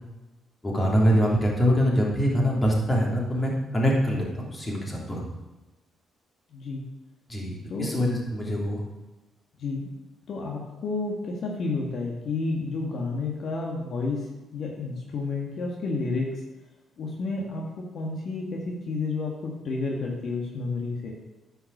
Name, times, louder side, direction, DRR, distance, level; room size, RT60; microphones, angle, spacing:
voice 1, 0.6-5.3 7.3-7.5 7.8-8.8, equal, 20° left, -2 dB, 3.1 m, -24 dB
voice 2, 6.5-6.8 7.7-7.9 9.6-9.9 10.3-14.3 14.5-16.3 17.0-21.1, left 3 dB, 60° left, -1 dB, 1.6 m, -30 dB
10.5 x 5.7 x 6.6 m, 1.1 s
cardioid pair, 90°, 0 cm